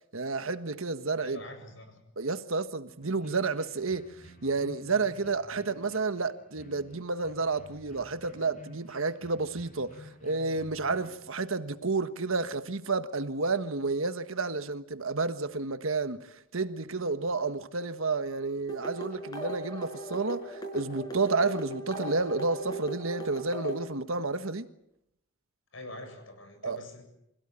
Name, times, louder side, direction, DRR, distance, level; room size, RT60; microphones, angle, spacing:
voice 1, 0.1-1.4 2.2-4.1 4.4-24.7 26.6-26.8, right 3 dB, 85° right, 1.5 m, -31 dB
voice 2, 1.2-2.0 25.7-27.0, left 1 dB, 70° left, 7.6 m, -44 dB
sound 1, 3.0-11.1, left 1 dB, 35° left, 6.8 m, -52 dB
sound 2, 18.7-23.9, right 1 dB, 20° left, 5.9 m, -38 dB
26.5 x 16.5 x 8.9 m
head